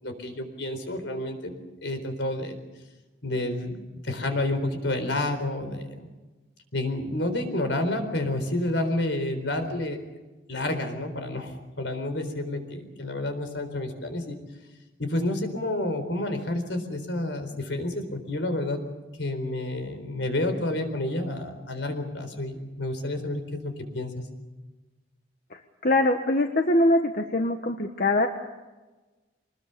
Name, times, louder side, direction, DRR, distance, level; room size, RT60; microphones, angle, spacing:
voice 1, 0.0-1.5 1.8-2.6 3.2-3.7 4.0-6.1 6.7-10.0 10.5-14.4 15.0-18.8 19.2-24.1, left 1 dB, 75° left, 7 dB, 4.1 m, -29 dB
voice 2, 25.5-28.3, left 1 dB, 50° left, 5 dB, 1.3 m, -23 dB
24.5 x 20.5 x 6.8 m, 1.2 s
head